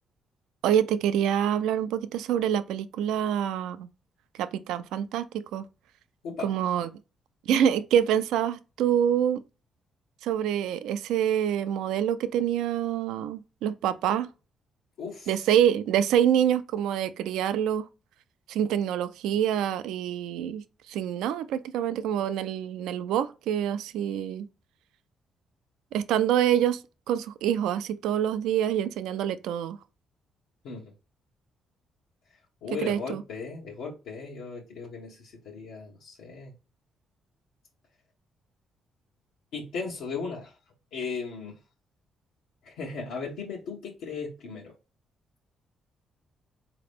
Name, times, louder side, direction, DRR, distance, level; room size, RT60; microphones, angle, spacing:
voice 1, 0.6-3.9 4.4-5.7 6.4-6.9 7.5-9.4 10.2-14.3 15.3-17.8 18.5-24.5 25.9-26.8 27.1-29.8 32.8-33.2, right 9 dB, 90° right, 0.4 m, -26 dB
voice 2, 15.0-15.5 30.6-30.9 32.3-36.5 39.5-41.6 42.6-44.7, left 5 dB, 90° left, 1.0 m, -37 dB
4.1 x 2.9 x 3.4 m
cardioid pair, 90°, 0 cm